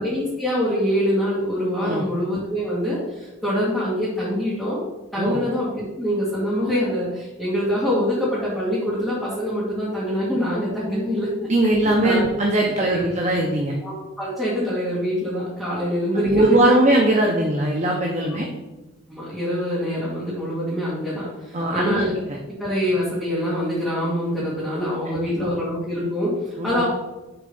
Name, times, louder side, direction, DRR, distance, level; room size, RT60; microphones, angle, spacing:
voice 1, 0.0-4.8 5.1-11.5 12.0-12.2 12.9-13.0 13.3-13.4 13.8-16.8 18.3-18.4 19.1-22.1 22.6-26.8, equal, ahead, -12 dB, 2.2 m, -25 dB
voice 2, 11.5-13.7 16.2-18.5 21.5-22.1 25.1-25.5 26.6-26.8, right 1 dB, 35° right, -1 dB, 0.8 m, -20 dB
6.9 x 3.8 x 5.4 m, 1.1 s
head